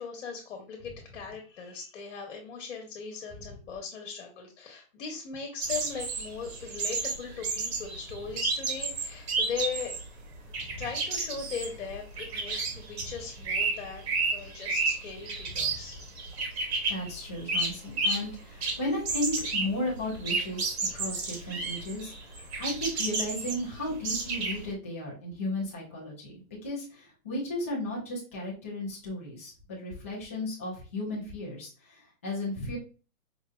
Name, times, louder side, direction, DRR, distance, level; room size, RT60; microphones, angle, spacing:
voice 1, 0.0-9.9 10.8-16.0, left 6 dB, 50° left, 2 dB, 1.1 m, -39 dB
sound 1, 5.6-10.1 10.3-18.3 18.6-24.7, right 3 dB, 45° right, 1.0 m, -32 dB
voice 2, 16.9-32.8, left 1 dB, 10° left, -7 dB, 0.4 m, -35 dB
4.9 x 2.7 x 2.2 m, 0.34 s
hypercardioid pair, 155°, 44 cm